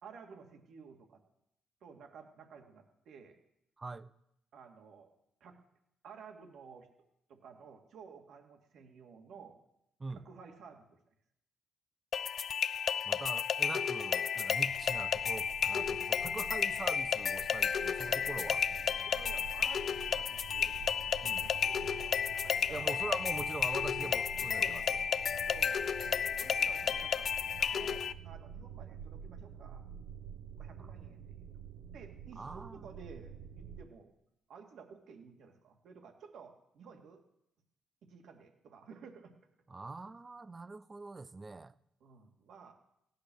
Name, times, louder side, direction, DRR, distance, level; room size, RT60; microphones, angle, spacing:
voice 1, 0.0-1.2 1.8-3.4 4.5-5.1 5.4-5.6 6.0-6.9 7.3-9.6 10.1-11.0 14.4-14.5 19.0-20.9 21.2-22.9 24.0-24.1 24.6-24.8 25.3-25.8 26.4-27.3 27.6-29.8 30.6-31.5 31.9-34.1 34.5-37.2 38.0-39.3 42.0-42.7, right 6 dB, 70° right, 2.5 m, -53 dB
voice 2, 3.8-4.1 10.0-10.2 13.0-18.6 21.2-21.5 22.7-24.8 30.8-30.9 32.4-32.9 39.7-41.7, right 3 dB, 25° right, 0.7 m, -43 dB
sound 1, 12.1-28.1, left 7 dB, 50° left, 0.5 m, -32 dB
sound 2, 14.7-33.9, right 7 dB, 85° right, 0.9 m, -49 dB
16.0 x 10.5 x 6.5 m
cardioid pair, 90°, 0 cm